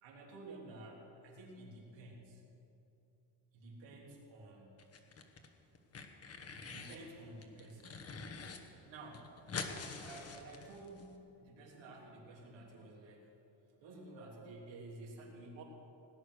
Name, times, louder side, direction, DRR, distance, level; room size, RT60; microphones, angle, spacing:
voice 1, 0.0-2.4 3.5-4.7 6.7-8.2 8.9-9.4 9.8-13.3 13.8-15.6, right 2 dB, 80° right, -2 dB, 3.3 m, -52 dB
sound 1, 4.8-5.5 5.8-7.0 7.4-8.6 8.9-9.0 9.1-11.1, left 4 dB, 35° left, 1.2 m, -45 dB
18.5 x 9.9 x 6.4 m, 2.9 s
cardioid pair, 140°, 44 cm